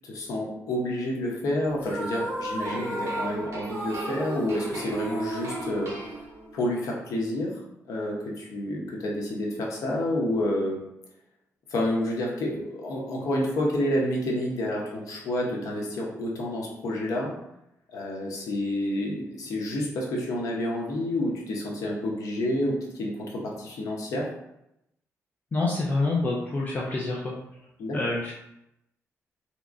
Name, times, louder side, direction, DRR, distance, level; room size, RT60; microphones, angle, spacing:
voice 1, 0.0-5.9 6.5-7.5 7.9-10.8 11.7-17.3 17.9-24.3 27.8-28.0, left 1 dB, 80° left, -2 dB, 0.9 m, -29 dB
sound 1, 1.8-6.6, right 1 dB, 35° right, 1.5 m, -34 dB
sound 2, 2.6-6.7, right 2 dB, 55° right, 1.0 m, -40 dB
voice 2, 25.5-27.4 27.9-28.3, left 2 dB, 30° left, -3 dB, 0.5 m, -27 dB
3.5 x 2.9 x 2.5 m, 0.83 s
wide cardioid pair, 145°, 6 cm